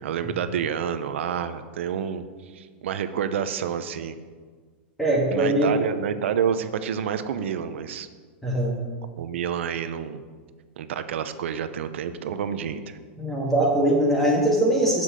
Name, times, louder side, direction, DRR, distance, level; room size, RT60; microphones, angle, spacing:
voice 1, 0.0-4.2 5.3-8.1 9.2-10.2 10.8-13.0, right 8 dB, 80° right, 11 dB, 0.7 m, -29 dB
voice 2, 5.0-5.7 8.4-8.8 13.2-15.0, right 1 dB, 5° left, -3 dB, 1.9 m, -21 dB
7.1 x 6.4 x 7.6 m, 1.5 s
supercardioid pair, 135°, 6 cm